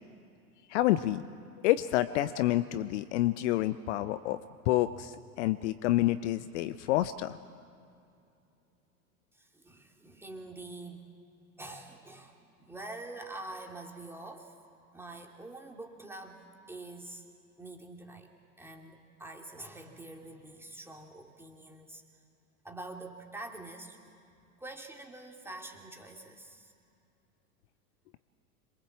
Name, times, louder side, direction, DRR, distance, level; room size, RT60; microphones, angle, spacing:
voice 1, 0.7-1.2 1.6-4.4 4.7-7.4, left 15 dB, 50° left, 14 dB, 0.8 m, -28 dB
voice 2, 9.3-11.1 11.6-14.7 14.9-16.4 16.7-17.2 17.6-18.3 18.6-22.0 22.6-24.0 24.6-26.7, right 2 dB, 5° right, 2 dB, 2.9 m, -46 dB
26.5 x 23.0 x 7.5 m, 2.6 s
figure-of-eight pair, 90°, 45 cm